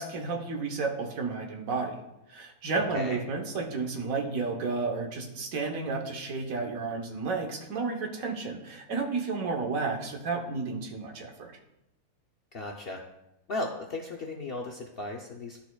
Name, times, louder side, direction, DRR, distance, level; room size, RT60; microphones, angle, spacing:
voice 1, 0.0-2.0 2.3-11.5, right 4 dB, 65° right, 2 dB, 1.3 m, -32 dB
voice 2, 12.5-13.0 13.5-15.6, left 2 dB, 60° left, 0 dB, 0.6 m, -35 dB
12.0 x 4.2 x 2.3 m, 0.89 s
omnidirectional pair, 1.6 m